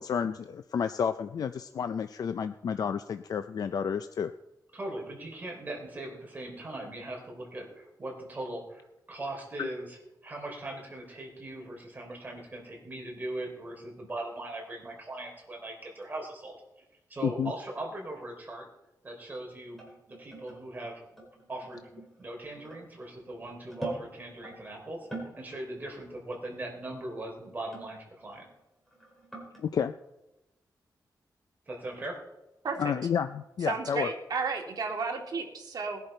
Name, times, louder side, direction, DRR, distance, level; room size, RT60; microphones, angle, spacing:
voice 1, 0.0-4.3 9.6-9.7 17.2-17.5 29.6-29.9 32.8-34.1, left 7 dB, 60° left, 10 dB, 0.5 m, -30 dB
voice 2, 4.7-10.0 10.2-16.6 17.1-18.7 19.0-19.8 20.2-21.0 21.5-21.9 22.2-28.4 31.7-32.2, right 1 dB, 25° right, 0 dB, 3.5 m, -39 dB
sound 1, 19.7-24.5 25.0-25.4 25.7-26.0 26.3-26.4 27.4-28.6 28.9-29.7, right 2 dB, 5° left, 5.0 m, -44 dB
voice 3, 33.6-36.0, right 4 dB, 65° right, 2 dB, 2.1 m, -33 dB
20.0 x 10.5 x 4.4 m, 0.95 s
wide cardioid pair, 170°, 7 cm